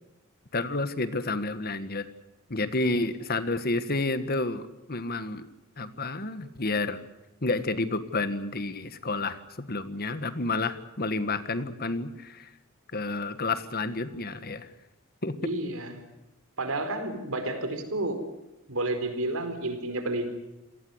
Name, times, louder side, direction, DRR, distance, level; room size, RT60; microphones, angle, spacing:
voice 1, 0.5-2.1 2.5-5.5 5.8-7.0 7.4-12.5 12.9-14.7 15.2-15.4, left 2 dB, 45° left, 12 dB, 1.6 m, -30 dB
voice 2, 15.4-15.9 16.6-18.3 18.7-20.3, right 2 dB, 80° right, 8 dB, 4.4 m, -30 dB
28.0 x 19.0 x 8.0 m, 0.95 s
head